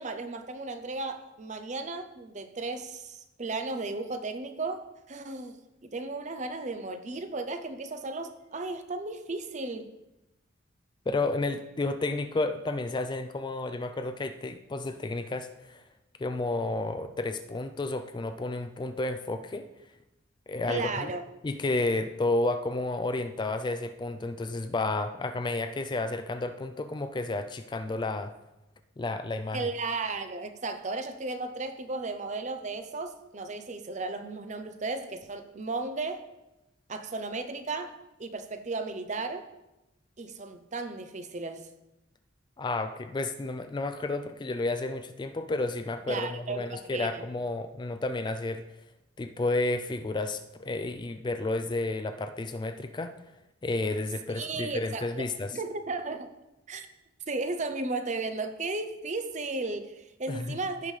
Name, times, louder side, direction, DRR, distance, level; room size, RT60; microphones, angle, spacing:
voice 1, 0.0-9.9 20.7-21.2 29.5-36.2 36.9-39.5 40.2-41.7 46.1-47.3 54.3-55.1 55.5-56.3 56.7-56.9 57.3-60.9, right 3 dB, 35° right, 8 dB, 0.6 m, -35 dB
voice 2, 11.1-15.8 16.2-19.7 20.5-21.1 21.4-28.3 29.0-29.7 42.6-48.6 49.2-53.1 53.6-55.6 60.3-60.6, left 2 dB, 20° left, 8 dB, 0.3 m, -31 dB
15.5 x 5.4 x 3.3 m, 0.98 s
head